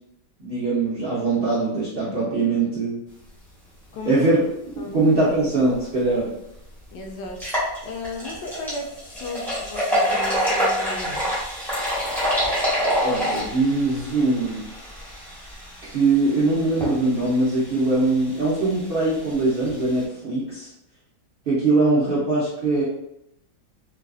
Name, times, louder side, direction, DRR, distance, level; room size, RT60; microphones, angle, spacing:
voice 1, 0.4-3.0 4.1-4.4 4.7-6.3 13.0-14.6 15.8-20.7 21.5-22.8, right 2 dB, 80° right, -8 dB, 0.5 m, -22 dB
voice 2, 3.9-4.2 4.8-5.0 6.9-7.4 7.8-11.4, left 2 dB, 75° left, 2 dB, 1.1 m, -35 dB
sound 1, 6.0-6.1 6.6-6.7 7.3-20.0, equal, ahead, 0.8 m, -27 dB
3.2 x 2.4 x 2.3 m, 0.81 s
omnidirectional pair, 2.0 m